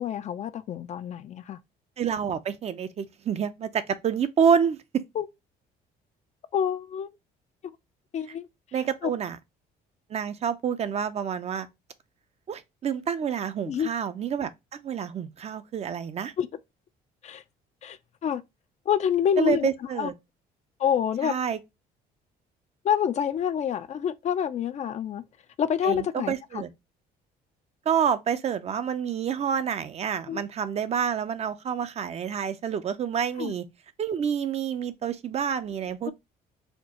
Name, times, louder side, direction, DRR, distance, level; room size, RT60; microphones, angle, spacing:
voice 1, 0.0-1.6 5.2-5.3 6.5-7.1 8.1-8.5 9.0-9.1 13.7-13.9 16.4-16.5 17.2-17.4 17.8-18.4 18.9-19.7 20.0-20.1 20.8-21.4 22.8-25.2 25.6-26.3 30.3-30.4 33.4-33.5 36.1-36.2, left 8 dB, 45° left, 0.4 m, -27 dB
voice 2, 2.0-5.0 8.7-9.4 10.1-11.7 12.5-14.5 14.8-16.3 19.4-20.1 21.2-21.6 25.8-26.7 27.9-33.6 34.0-36.1, right 7 dB, 40° right, 0.5 m, -28 dB
4.3 x 2.3 x 2.8 m
cardioid pair, 110°, 17 cm